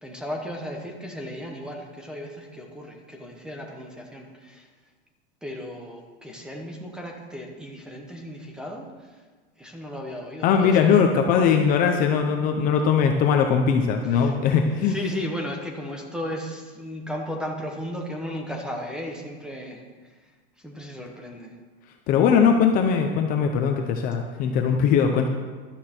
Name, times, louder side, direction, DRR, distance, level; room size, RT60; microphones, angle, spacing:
voice 1, 0.0-4.7 5.4-9.1 9.6-10.9 14.1-14.3 14.9-19.8 20.6-21.5, equal, ahead, 1 dB, 0.9 m, -35 dB
voice 2, 10.4-15.0 22.1-25.3, left 6 dB, 25° left, 3 dB, 0.7 m, -20 dB
13.0 x 12.0 x 4.4 m, 1.4 s
supercardioid pair, 175°, 32 cm